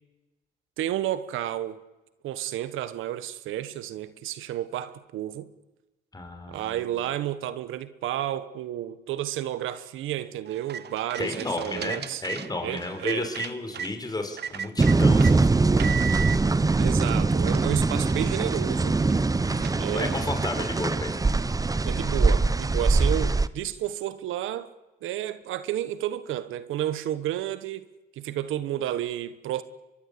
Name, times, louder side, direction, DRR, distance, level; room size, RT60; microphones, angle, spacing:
voice 1, 0.8-1.8 2.2-5.5 6.5-12.2 12.6-13.3 16.8-19.0 19.8-20.2 21.8-24.7 25.0-27.8 28.2-29.6, right 12 dB, 85° right, 1.3 m, -31 dB
voice 2, 6.1-6.8 11.2-16.3 19.5-21.2, left 2 dB, 20° left, 4.9 m, -33 dB
sound 1, 10.5-13.9 14.4-15.3 15.8-16.4 17.0-17.1 17.5-20.3, right 8 dB, 55° right, 1.0 m, -37 dB
sound 2, 14.8-23.5, right 3 dB, 15° right, 0.9 m, -22 dB
23.0 x 22.5 x 8.5 m
cardioid pair, 90°, 20 cm